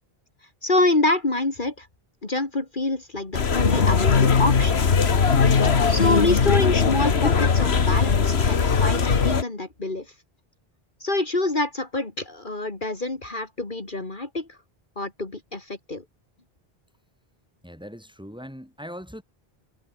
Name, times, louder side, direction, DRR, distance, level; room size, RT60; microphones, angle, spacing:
voice 1, 0.6-1.9 2.2-4.9 5.9-10.1 11.0-14.6 15.0-16.0, left 2 dB, 50° left, 3.0 m, -26 dB
sound 1, 3.3-9.4, left 5 dB, 85° left, 1.8 m, -19 dB
voice 2, 17.6-19.2, equal, 5° right, 7.3 m, -40 dB
omnidirectional pair, 1.0 m